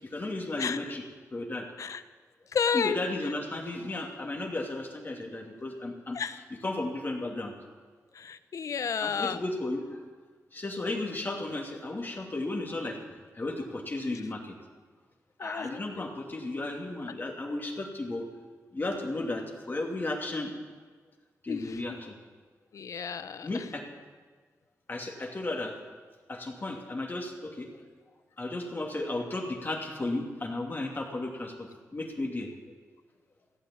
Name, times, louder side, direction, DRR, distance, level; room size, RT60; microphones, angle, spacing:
voice 1, 0.1-1.0 1.3-1.7 2.7-6.2 6.5-7.5 9.0-9.9 10.5-13.0 13.4-14.4 15.4-18.3 18.7-20.5 21.4-22.2 23.4-23.8 24.9-25.7 26.3-27.8 28.4-31.7 31.9-32.5, left 2 dB, 35° left, 1 dB, 2.6 m, -34 dB
voice 2, 2.5-3.0 6.1-6.4 8.1-9.4 15.4-15.8 21.5-22.0 22.7-23.6, left 6 dB, 70° left, 12 dB, 0.7 m, -31 dB
15.5 x 8.7 x 8.5 m, 1.4 s
cardioid pair, 85°, 6 cm